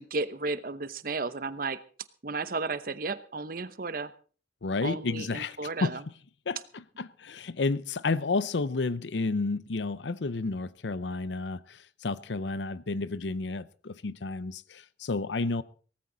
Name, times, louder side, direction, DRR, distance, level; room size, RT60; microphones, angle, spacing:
voice 1, 0.0-1.8 2.2-4.1 4.8-6.0, right 3 dB, 55° right, 0.9 m, -33 dB
voice 2, 4.6-6.0 6.5-15.6, left 3 dB, 85° left, 0.7 m, -31 dB
17.5 x 14.5 x 4.0 m
head